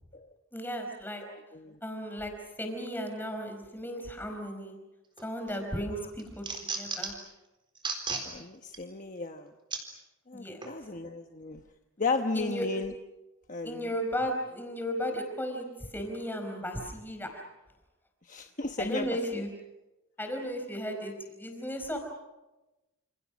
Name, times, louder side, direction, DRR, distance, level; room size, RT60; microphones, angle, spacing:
voice 1, 0.5-1.2 1.8-4.8 5.2-6.4 6.8-7.1 10.3-10.6 12.3-12.7 13.6-15.7 15.9-17.4 18.8-19.5 20.2-22.0, equal, 10° left, 5 dB, 4.8 m, -35 dB
voice 2, 1.2-1.8 5.8-6.1 8.2-9.5 10.3-11.6 12.0-13.0 13.5-13.9 18.2-19.4, left 3 dB, 35° left, 5 dB, 1.1 m, -35 dB
sound 1, 5.2-5.6 6.0-7.3 7.8-8.3 8.7-8.8 9.7-9.8 10.6-10.7, right 4 dB, 20° right, 3.9 m, -34 dB
28.5 x 28.5 x 6.2 m, 1.0 s
head